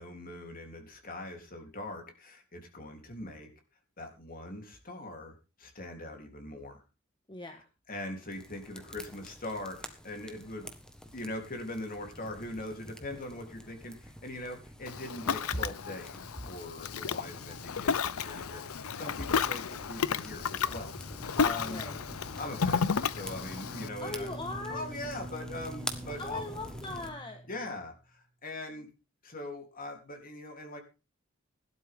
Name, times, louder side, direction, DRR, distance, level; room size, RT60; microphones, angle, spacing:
voice 1, 0.0-3.5 4.0-6.8 7.9-10.7 11.1-21.8 22.4-24.3 24.7-26.4 27.5-28.9 29.2-30.8, left 1 dB, 40° left, 4 dB, 3.6 m, -41 dB
voice 2, 7.3-7.7 21.6-22.0 24.0-24.9 26.2-27.4, left 2 dB, 25° left, 4 dB, 1.6 m, -39 dB
sound 1, 8.2-27.1, equal, 5° left, 1.7 m, -47 dB
Ocean, 14.9-23.9, left 6 dB, 90° left, 0.7 m, -33 dB
Bowed string instrument, 23.3-28.0, right 2 dB, 30° right, 0.7 m, -46 dB
17.0 x 12.0 x 3.8 m, 0.31 s
head